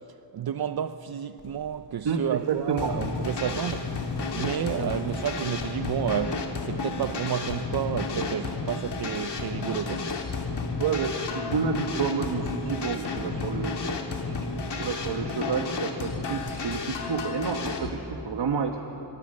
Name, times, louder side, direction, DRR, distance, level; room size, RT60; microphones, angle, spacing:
voice 1, 0.1-3.9 4.3-10.2, right 9 dB, 60° right, 0.6 m, -31 dB
sound 1, 1.4-6.8, left 2 dB, 55° left, 4.6 m, -51 dB
voice 2, 2.0-3.0 4.7-4.9 10.8-13.8 14.3-18.9, right 6 dB, 75° right, 1.4 m, -30 dB
sound 2, 2.8-17.9, left 3 dB, 75° left, 2.8 m, -32 dB
28.5 x 26.0 x 6.6 m
wide cardioid pair, 155°, 41 cm